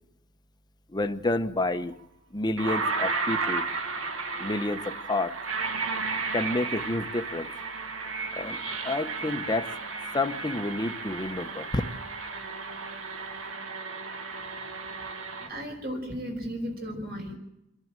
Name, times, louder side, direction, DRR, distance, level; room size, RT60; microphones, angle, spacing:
voice 1, 0.9-2.0 2.3-3.7 4.4-5.3 6.3-7.5 8.3-8.6 8.8-9.7 10.1-11.8, left 2 dB, 20° left, 8 dB, 1.0 m, -29 dB
sound 1, 1.9-2.0 2.6-15.5, right 4 dB, 80° right, 1.8 m, -33 dB
voice 2, 15.4-17.4, equal, 50° right, 3 dB, 5.7 m, -35 dB
27.0 x 11.0 x 8.9 m, 0.86 s
head